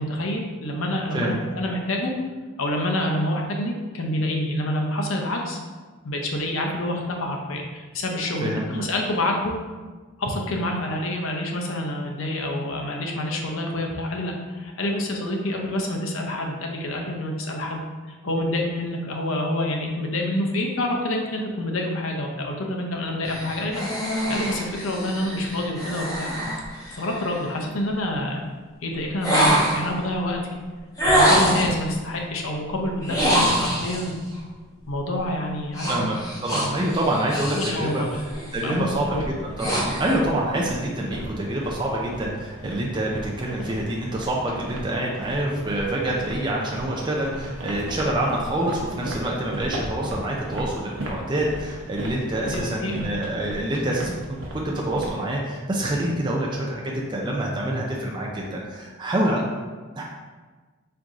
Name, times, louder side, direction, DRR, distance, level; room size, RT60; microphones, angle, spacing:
voice 1, 0.0-2.1 2.6-5.6 6.0-9.5 10.2-17.8 18.1-23.8 24.1-26.3 26.9-28.4 28.8-30.4 31.0-34.2 34.9-36.0 37.5-38.2 38.6-39.2 52.5-53.0, left 1 dB, 80° left, 1 dB, 0.7 m, -27 dB
sound 1, 23.2-27.5 29.2-30.0 31.0-31.8 33.0-34.1 35.7-37.8 38.2-38.6 39.1-40.2, equal, 15° left, 0.9 m, -24 dB
voice 2, 36.4-38.0 38.5-39.2 39.4-59.4 60.0-60.1, right 1 dB, 20° right, -2 dB, 0.4 m, -26 dB
sound 2, 38.7-55.1, right 1 dB, 70° right, 0.7 m, -37 dB
4.6 x 2.6 x 3.6 m, 1.4 s
head